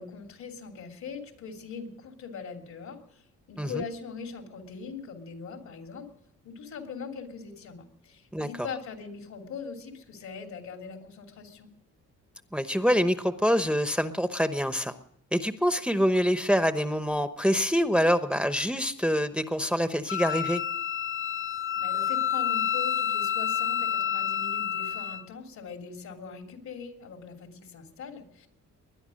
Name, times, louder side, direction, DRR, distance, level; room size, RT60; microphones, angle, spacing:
voice 1, 0.0-3.0 3.5-6.1 6.4-11.7 21.7-28.5, left 5 dB, 65° left, 4 dB, 3.1 m, -41 dB
voice 2, 12.5-14.9 15.3-20.6, equal, 5° right, 10 dB, 0.9 m, -25 dB
Wind instrument woodwind instrument, 20.1-25.2, left 9 dB, 40° left, 0.6 m, -29 dB
21.0 x 10.5 x 6.4 m, 0.78 s
cardioid pair, 90°, 30 cm